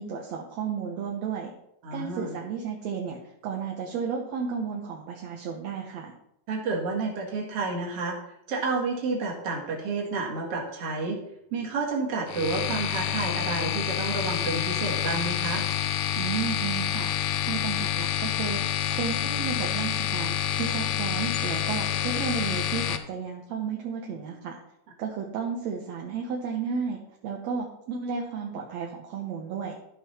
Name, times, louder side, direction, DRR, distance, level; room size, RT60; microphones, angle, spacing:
voice 1, 0.0-1.5 1.9-6.1 16.2-17.1 17.4-18.6 18.9-24.6 25.0-29.8, right 6 dB, 65° right, 0 dB, 2.0 m, -33 dB
voice 2, 1.8-2.4 6.5-8.2 8.5-11.2 11.5-15.6, right 3 dB, 50° right, -1 dB, 2.7 m, -30 dB
sound 1, 12.3-23.0, left 11 dB, 75° left, 1.7 m, -28 dB
13.5 x 5.5 x 4.3 m, 0.78 s
omnidirectional pair, 3.8 m